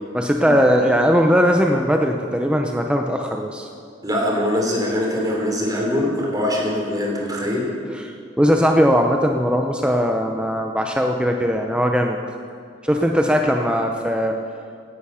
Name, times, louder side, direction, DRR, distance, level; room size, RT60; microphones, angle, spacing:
voice 1, 0.1-3.7 7.9-8.1 8.4-12.2 12.8-14.4, equal, 5° right, 3 dB, 0.7 m, -19 dB
voice 2, 4.0-7.7, left 1 dB, 20° right, -1 dB, 3.3 m, -22 dB
17.0 x 11.0 x 5.7 m, 2.3 s
head